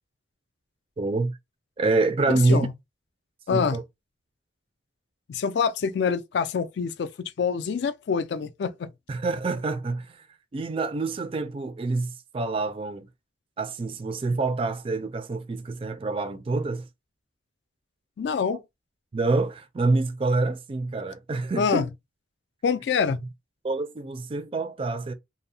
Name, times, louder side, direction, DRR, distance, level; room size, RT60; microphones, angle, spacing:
voice 1, 1.0-1.3 1.8-2.7 3.5-3.8 9.1-10.2 10.5-13.1 13.6-16.8 19.1-21.9 23.6-25.1, right 3 dB, 30° right, 0.3 m, -26 dB
voice 2, 2.3-2.7 3.5-3.8 5.3-7.1 7.4-8.9 18.2-18.6 21.5-21.9 22.6-23.2, left 6 dB, 65° left, 0.3 m, -26 dB
2.6 x 2.0 x 2.6 m
head